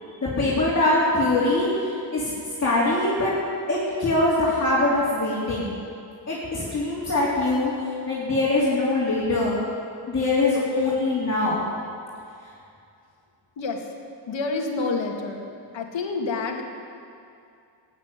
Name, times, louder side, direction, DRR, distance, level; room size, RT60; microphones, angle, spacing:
voice 1, 0.2-2.3 2.6-3.3 3.7-5.7 6.3-7.7 8.1-9.5 10.1-11.6, left 2 dB, 35° left, -7 dB, 3.3 m, -23 dB
voice 2, 14.3-15.4 15.7-16.6, left 3 dB, 80° left, 2 dB, 2.1 m, -28 dB
17.0 x 8.9 x 9.6 m, 2.5 s
wide cardioid pair, 125°, 44 cm